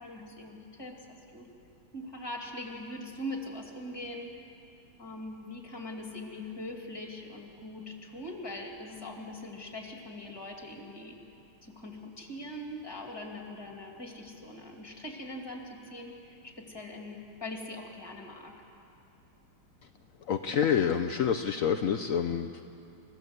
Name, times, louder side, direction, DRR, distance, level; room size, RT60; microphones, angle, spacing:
voice 1, 0.0-1.5 1.9-4.3 5.0-11.2 11.6-18.5, left 1 dB, 10° left, 1 dB, 2.6 m, -42 dB
voice 2, 20.3-22.6, left 8 dB, 80° left, 6 dB, 0.7 m, -27 dB
29.0 x 15.5 x 8.0 m, 2.8 s
omnidirectional pair, 2.3 m